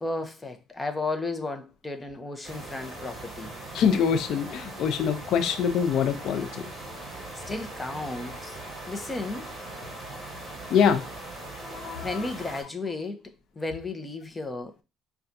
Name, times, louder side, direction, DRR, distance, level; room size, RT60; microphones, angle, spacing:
voice 1, 0.0-3.6 7.5-8.6 8.9-9.5 12.0-13.2 13.6-14.8, left 3 dB, 15° left, 0.7 m, -33 dB
sound 1, 2.4-12.6, right 2 dB, 5° right, 2.1 m, -40 dB
voice 2, 3.7-6.6 10.7-11.0 11.6-12.3, left 7 dB, 65° left, 0.6 m, -24 dB
5.7 x 2.3 x 2.6 m
cardioid pair, 115°, 0 cm